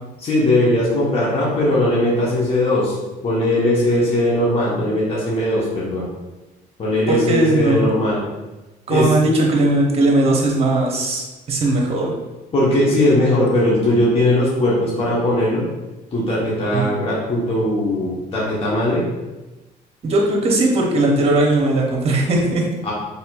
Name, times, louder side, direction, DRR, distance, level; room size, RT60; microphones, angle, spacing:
voice 1, 0.2-2.9 3.2-6.1 6.8-8.2 8.9-9.1 12.5-15.7 16.1-19.0 22.8-22.9, left 1 dB, 35° left, -6 dB, 1.2 m, -19 dB
voice 2, 7.1-7.9 8.9-12.1 16.7-16.9 20.0-22.6, right 2 dB, 35° right, 0 dB, 1.0 m, -18 dB
4.3 x 3.6 x 2.4 m, 1.1 s
cardioid pair, 110°, 17 cm